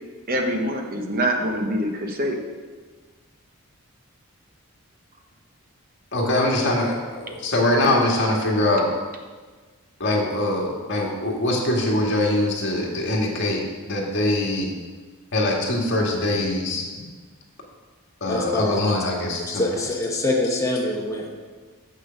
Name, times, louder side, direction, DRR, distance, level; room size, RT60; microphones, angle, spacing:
voice 1, 0.3-2.4, equal, 40° right, 3 dB, 1.0 m, -24 dB
voice 2, 6.1-8.9 10.0-14.7 15.3-16.8 18.2-19.8, left 1 dB, 55° left, -1 dB, 1.8 m, -23 dB
voice 3, 18.3-18.8 19.5-21.3, left 2 dB, 15° left, -2 dB, 1.0 m, -24 dB
7.6 x 6.6 x 5.8 m, 1.4 s
head